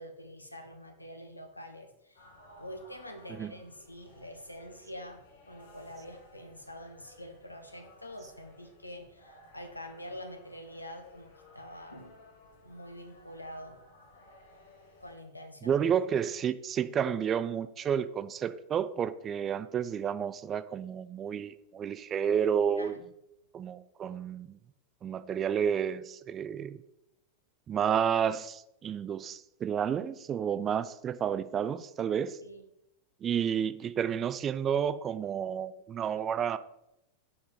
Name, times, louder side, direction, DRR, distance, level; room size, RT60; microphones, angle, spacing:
voice 1, 0.0-2.3 2.6-12.2 12.6-13.8 15.0-15.8 22.8-23.1 32.4-32.6, equal, 85° left, 6 dB, 0.8 m, -46 dB
sound 1, 2.2-15.1, left 2 dB, 65° left, 1.3 m, -57 dB
voice 2, 15.6-23.0 23.5-24.6 25.0-26.8 27.7-32.4 33.2-36.6, right 8 dB, 25° right, 14 dB, 0.3 m, -31 dB
4.9 x 4.7 x 5.5 m, 0.85 s
figure-of-eight pair, 90°, 0 cm